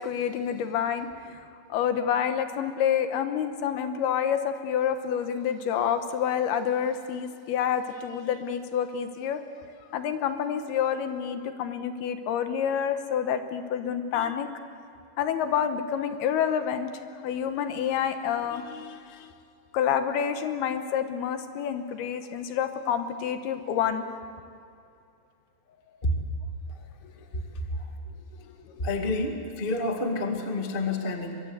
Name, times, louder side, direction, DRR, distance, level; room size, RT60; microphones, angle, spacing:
voice 1, 0.0-1.4 1.7-9.4 9.9-14.5 15.2-16.9 17.2-19.3 19.7-24.1 28.7-28.8, left 8 dB, 75° left, 8 dB, 2.9 m, -28 dB
voice 2, 28.8-31.4, left 2 dB, 60° left, 3 dB, 0.5 m, -29 dB
23.5 x 22.5 x 8.0 m, 2.4 s
omnidirectional pair, 4.9 m